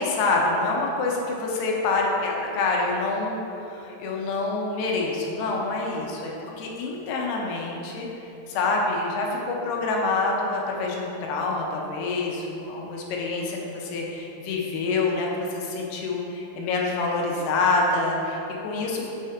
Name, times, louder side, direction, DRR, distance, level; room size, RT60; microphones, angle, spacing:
voice 1, 0.0-3.4 3.6-8.1 8.5-19.1, left 3 dB, 90° left, -1 dB, 2.8 m, -26 dB
6.5 x 4.4 x 5.0 m, 2.9 s
omnidirectional pair, 4.4 m